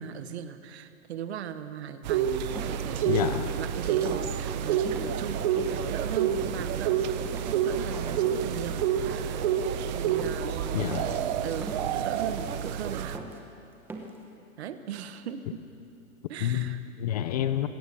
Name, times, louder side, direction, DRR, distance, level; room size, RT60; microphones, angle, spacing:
voice 1, 0.0-9.5 9.9-13.1 14.6-15.6 16.3-16.8, right 9 dB, 50° right, 10 dB, 1.4 m, -39 dB
sound 1, 2.1-13.2, right 8 dB, 30° right, 0.9 m, -29 dB
sound 2, 2.5-2.8 3.3-3.6 4.0-4.3 4.9-5.8 6.3-6.6 7.1-7.5 7.9-8.3 8.7-9.0 9.3-9.7 10.2-10.5 10.9-11.3 11.6-11.9 12.4-12.9 13.1-13.4 13.9-14.2, right 3 dB, 5° right, 1.1 m, -42 dB
sound 3, 2.5-13.0, right 9 dB, 85° right, 1.0 m, -39 dB
voice 2, 3.1-3.5 10.7-11.2 16.4-17.7, left 11 dB, 30° left, 11 dB, 0.7 m, -29 dB
26.0 x 16.5 x 6.9 m, 2.7 s
hypercardioid pair, 150°, 42 cm